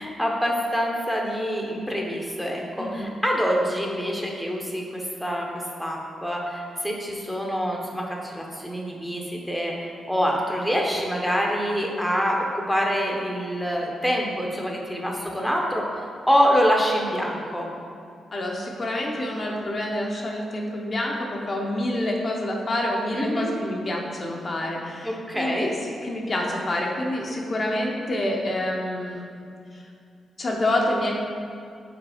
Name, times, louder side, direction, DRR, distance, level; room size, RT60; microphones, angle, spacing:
voice 1, 0.0-4.8 5.2-5.5 5.8-17.7 23.1-23.5 25.0-25.7, equal, ahead, -1 dB, 0.8 m, -25 dB
voice 2, 2.8-3.1 18.3-29.8 30.4-31.1, left 1 dB, 35° left, -1 dB, 0.7 m, -27 dB
5.0 x 4.0 x 4.9 m, 2.5 s
cardioid pair, 110°, 0 cm